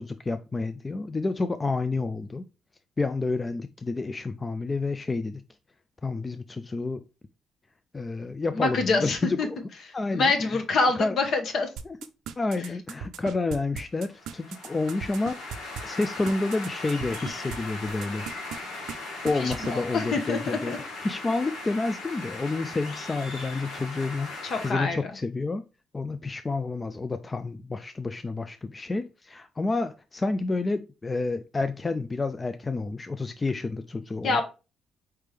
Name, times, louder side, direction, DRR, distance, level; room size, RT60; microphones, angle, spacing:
voice 1, 0.0-2.4 3.0-5.4 6.0-7.0 7.9-9.6 9.9-10.6 11.0-11.2 12.4-18.3 19.2-25.6 25.9-34.4, left 3 dB, 25° left, 0.3 m, -29 dB
voice 2, 8.5-9.5 9.9-11.7 19.4-20.8 24.4-25.0 34.2-34.4, left 3 dB, 60° left, 1.0 m, -26 dB
sound 1, 11.8-17.6 17.9-18.6 18.9-19.0 19.3-19.7, right 8 dB, 80° right, 0.4 m, -37 dB
sound 2, 14.0-24.7, left 2 dB, 90° left, 1.3 m, -38 dB
4.4 x 3.4 x 3.2 m
cardioid pair, 90°, 0 cm